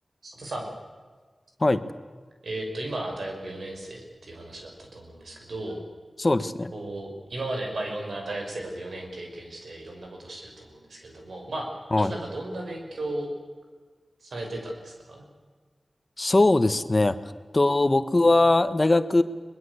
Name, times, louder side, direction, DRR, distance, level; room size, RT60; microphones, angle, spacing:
voice 1, 0.2-0.7 2.4-5.8 6.7-11.7 11.9-13.3 14.2-15.2, right 1 dB, 90° right, 2 dB, 5.7 m, -35 dB
voice 2, 6.2-6.7 11.9-12.1 16.2-17.2 17.5-19.2, left 2 dB, 35° left, 12 dB, 1.3 m, -20 dB
22.5 x 21.0 x 8.2 m, 1.5 s
wide cardioid pair, 55°, 0 cm